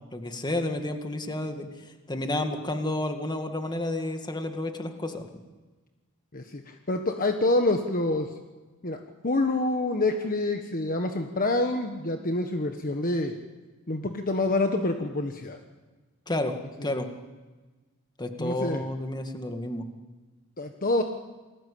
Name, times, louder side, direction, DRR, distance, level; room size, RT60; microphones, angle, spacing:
voice 1, 0.1-1.7 2.1-5.2 16.3-16.6 16.8-17.1 18.2-19.9, left 1 dB, 20° left, 5 dB, 2.1 m, -30 dB
voice 2, 6.3-8.3 8.8-13.4 13.9-15.6 16.8-16.9 18.4-18.8 20.6-21.0, left 2 dB, 40° left, 5 dB, 1.4 m, -27 dB
29.0 x 20.5 x 8.6 m, 1.3 s
head